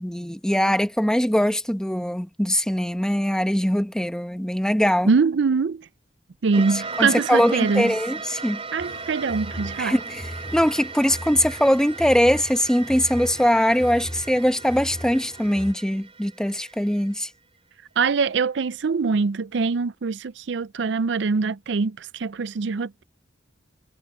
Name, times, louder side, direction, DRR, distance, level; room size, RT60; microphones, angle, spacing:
voice 1, 0.0-5.1 6.7-8.6 9.8-17.3, equal, 5° left, 0.9 m, -22 dB
voice 2, 5.1-5.9 6.4-7.9 8.7-10.0 18.0-23.0, right 4 dB, 70° right, 0.5 m, -23 dB
sound 1, 6.5-17.2, right 4 dB, 35° right, 2.8 m, -37 dB
sound 2, 8.8-15.7, equal, 25° left, 2.1 m, -38 dB
head